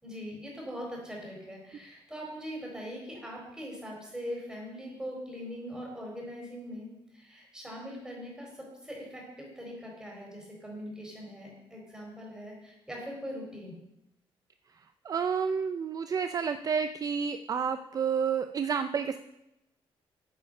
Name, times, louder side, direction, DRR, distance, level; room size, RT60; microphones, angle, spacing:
voice 1, 0.0-13.7, equal, 5° right, -2 dB, 4.4 m, -41 dB
voice 2, 15.0-19.2, right 6 dB, 40° right, 9 dB, 0.5 m, -30 dB
9.4 x 8.7 x 6.6 m, 0.89 s
cardioid pair, 130°, 10 cm